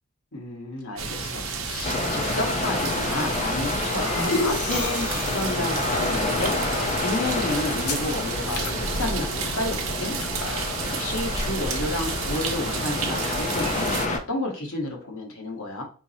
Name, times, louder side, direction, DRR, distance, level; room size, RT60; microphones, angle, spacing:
voice 1, 0.3-10.1 10.5-15.8, left 2 dB, 65° left, 0 dB, 1.2 m, -31 dB
sound 1, 1.0-14.1, right 4 dB, 70° right, 0.7 m, -31 dB
sound 2, 1.8-14.2, left 2 dB, 30° left, 0.4 m, -29 dB
sound 3, 2.9-12.4, left 2 dB, 80° left, 0.8 m, -33 dB
4.6 x 2.0 x 4.1 m, 0.40 s
head